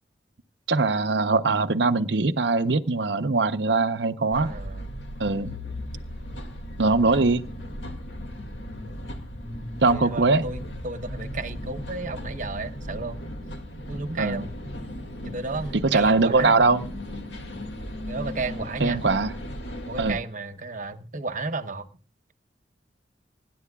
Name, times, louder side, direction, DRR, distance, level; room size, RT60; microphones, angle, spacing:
voice 1, 0.7-4.5 5.2-5.5 6.8-7.4 9.8-10.5 14.2-14.4 15.9-16.8 18.8-19.3 20.0-20.2, right 3 dB, 65° right, 0.8 m, -21 dB
sound 1, 4.3-20.2, left 1 dB, 75° left, 2.2 m, -36 dB
voice 2, 4.3-4.9 7.0-7.3 9.8-13.2 13.9-14.5 15.2-16.6 18.1-19.0 19.9-21.9, right 3 dB, 45° right, 1.0 m, -33 dB
25.0 x 11.0 x 2.3 m
head